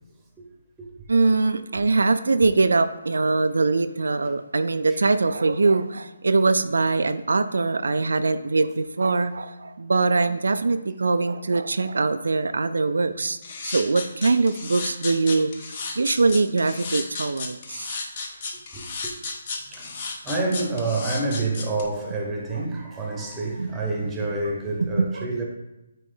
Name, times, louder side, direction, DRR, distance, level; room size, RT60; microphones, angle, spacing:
voice 1, 1.1-15.5 16.0-18.0 23.6-23.7 24.8-25.3, right 3 dB, 85° right, 0.3 m, -22 dB
sound 1, 13.4-21.8, left 4 dB, 35° left, 0.9 m, -33 dB
voice 2, 18.7-19.1 19.7-25.4, right 2 dB, 10° right, 1.0 m, -28 dB
8.5 x 3.0 x 3.8 m
hypercardioid pair, 165°, 0 cm